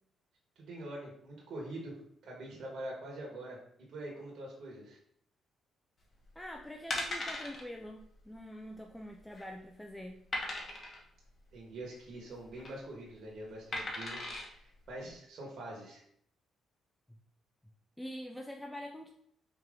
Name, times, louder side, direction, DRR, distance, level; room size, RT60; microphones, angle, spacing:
voice 1, 0.5-1.9 2.2-3.6 3.9-5.0 11.5-16.0, right 1 dB, 65° right, -3 dB, 1.4 m, -44 dB
sound 1, 6.2-6.4 6.9-7.6 8.0-8.1 8.4-8.5 9.1-9.5 10.3-11.0 12.3-12.7 13.7-14.5 15.1-15.2, left 2 dB, 40° left, 1.2 m, -38 dB
voice 2, 6.4-10.2 18.0-19.1, equal, 5° left, 1 dB, 0.5 m, -45 dB
4.9 x 3.0 x 3.7 m, 0.69 s
cardioid pair, 90°, 0 cm